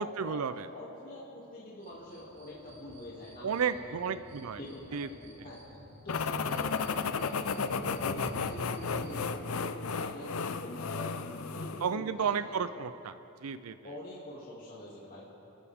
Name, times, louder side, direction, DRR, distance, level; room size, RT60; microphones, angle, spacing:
voice 1, 0.0-0.7 3.4-4.6 4.9-5.1 11.8-13.1 13.4-13.8, right 6 dB, 85° right, 12 dB, 0.5 m, -32 dB
voice 2, 0.7-4.2 4.6-10.3 10.6-12.8 13.8-15.2, left 1 dB, 40° left, -8 dB, 2.5 m, -45 dB
sound 1, 1.8-9.3, equal, 55° right, 3.2 m, -50 dB
sound 2, 6.1-11.9, left 5 dB, 75° left, 0.6 m, -33 dB
27.5 x 14.0 x 3.6 m, 2.9 s
head